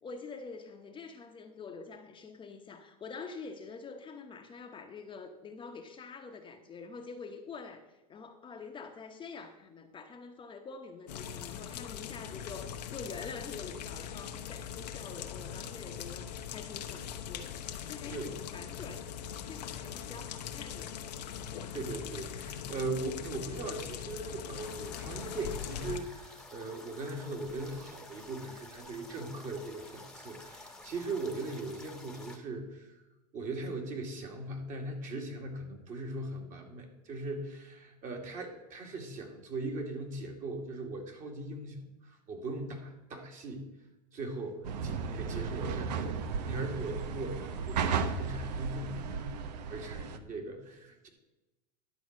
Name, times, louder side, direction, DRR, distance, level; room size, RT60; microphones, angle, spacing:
voice 1, 0.0-19.0 19.5-20.9 21.5-21.8, left 4 dB, 25° left, 3 dB, 1.0 m, -46 dB
sound 1, 11.1-26.0, left 9 dB, 80° left, 1.0 m, -41 dB
voice 2, 21.7-33.0 33.3-43.6 44.1-51.1, right 2 dB, 40° right, 2 dB, 2.2 m, -39 dB
sound 2, 24.6-32.4, left 2 dB, 5° left, 1.2 m, -51 dB
sound 3, 44.6-50.2, right 5 dB, 80° right, 0.9 m, -35 dB
11.0 x 4.7 x 7.4 m, 1.0 s
hypercardioid pair, 110°, 21 cm